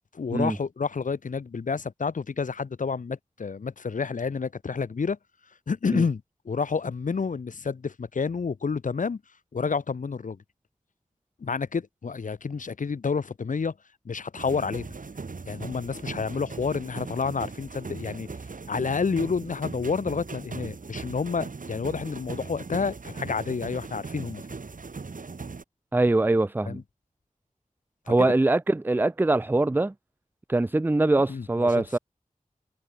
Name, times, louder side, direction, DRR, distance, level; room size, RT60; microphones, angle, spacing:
voice 1, 0.1-5.2 5.7-9.2 9.5-10.4 11.4-13.7 14.0-14.9 15.5-18.3 18.7-24.4 26.7-26.8 28.1-28.3 31.3-32.0, left 5 dB, 70° left, 0.8 m, -29 dB
sound 1, 14.4-25.6, right 4 dB, 80° right, 3.6 m, -39 dB
voice 2, 25.9-26.8 28.1-29.9 30.5-32.0, right 2 dB, 15° right, 0.4 m, -23 dB
wide cardioid pair, 70°, 14 cm